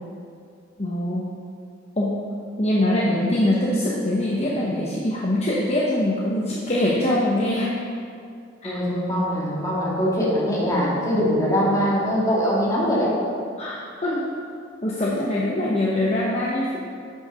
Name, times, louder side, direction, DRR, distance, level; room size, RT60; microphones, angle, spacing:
voice 1, 0.8-1.3 2.0-2.2 2.6-7.8 8.6-8.7 13.6-14.3 14.8-16.8, left 1 dB, 35° left, -5 dB, 1.0 m, -23 dB
voice 2, 8.6-13.1, equal, 20° left, -6 dB, 2.2 m, -22 dB
8.0 x 6.4 x 5.5 m, 2.3 s
head